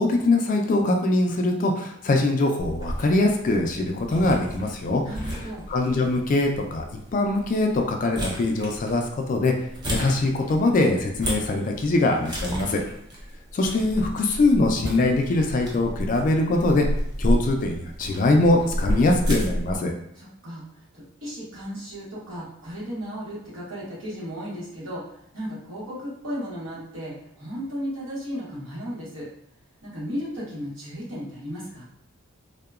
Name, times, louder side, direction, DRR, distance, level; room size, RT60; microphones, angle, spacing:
voice 1, 0.0-5.0 5.7-6.8 7.1-9.0 9.3-9.5 9.9-12.8 13.5-16.9 17.2-19.9, left 2 dB, 40° left, 3 dB, 0.3 m, -22 dB
sound 1, 2.6-19.8, equal, 20° right, 0.5 m, -32 dB
voice 2, 5.0-5.7 20.1-20.6 20.9-29.3 29.8-31.8, equal, 75° right, -8 dB, 1.2 m, -35 dB
2.8 x 2.1 x 2.3 m, 0.75 s
head